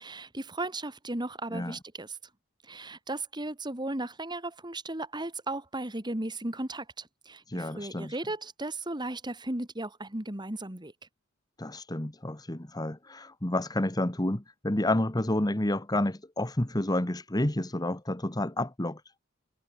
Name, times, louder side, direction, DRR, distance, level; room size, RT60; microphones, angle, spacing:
voice 1, 0.0-2.2 2.6-10.9, right 2 dB, 20° right, 2.3 m, -36 dB
voice 2, 7.5-8.1 11.6-19.0, left 1 dB, 20° left, 1.3 m, -30 dB
head